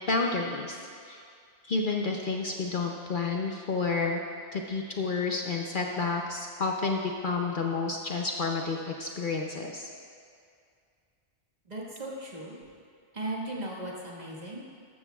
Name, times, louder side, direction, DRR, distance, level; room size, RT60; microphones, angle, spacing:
voice 1, 0.1-0.8 1.1-1.2 1.6-4.2 4.5-9.9, left 4 dB, 50° left, 1 dB, 0.8 m, -30 dB
voice 2, 11.7-12.6 13.1-14.6, right 1 dB, 35° right, -3 dB, 1.7 m, -37 dB
13.0 x 13.0 x 2.3 m, 2.3 s
omnidirectional pair, 1.2 m